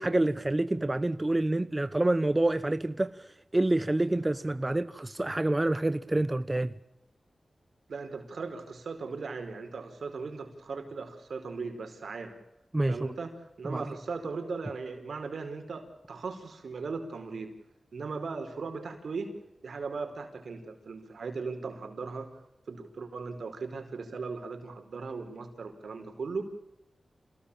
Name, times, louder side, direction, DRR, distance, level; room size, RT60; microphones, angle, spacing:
voice 1, 0.0-6.7 12.7-13.1 13.6-13.8, right 2 dB, 30° right, 1.1 m, -27 dB
voice 2, 7.9-12.3 12.9-13.3 13.6-17.5 17.9-19.3 19.6-22.3 22.7-26.4, right 4 dB, 80° right, 4.9 m, -38 dB
28.0 x 19.5 x 8.8 m
cardioid pair, 45°, 0 cm